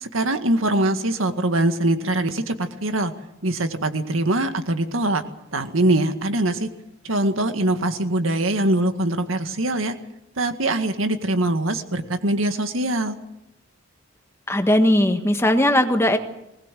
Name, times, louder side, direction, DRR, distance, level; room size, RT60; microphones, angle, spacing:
voice 1, 0.0-3.1 3.4-5.2 5.5-6.7 7.0-9.9 10.4-13.2, right 1 dB, 85° right, 7 dB, 1.9 m, -22 dB
voice 2, 14.5-16.2, left 1 dB, 15° left, 6 dB, 1.5 m, -18 dB
21.0 x 19.5 x 7.6 m, 0.89 s
head